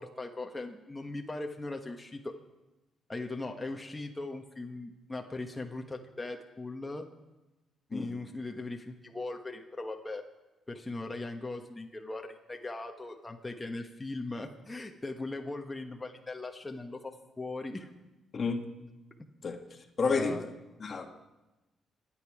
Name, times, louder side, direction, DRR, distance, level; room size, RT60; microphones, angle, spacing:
voice 1, 0.0-2.3 3.1-7.0 7.9-10.2 10.7-17.9 20.0-20.5, left 2 dB, 15° left, 3 dB, 1.2 m, -39 dB
voice 2, 18.3-18.6 19.4-19.6 20.0-20.4 20.8-21.1, left 4 dB, 45° left, 5 dB, 1.4 m, -30 dB
26.0 x 8.9 x 4.9 m, 1.1 s
cardioid pair, 90°, 0 cm